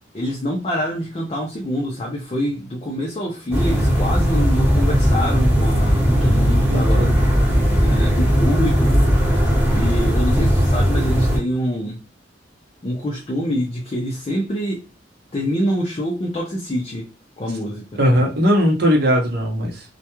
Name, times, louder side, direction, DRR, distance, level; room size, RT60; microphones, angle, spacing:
voice 1, 0.1-7.1 7.8-9.0 9.7-12.0 12.8-14.8 15.3-17.1 17.4-18.0, equal, 30° left, 0.4 m, -25 dB
sound 1, 3.5-11.4, equal, 10° right, 1.0 m, -17 dB
voice 2, 6.7-7.1 18.0-19.8, equal, 60° right, 0.8 m, -18 dB
2.3 x 2.2 x 2.9 m
head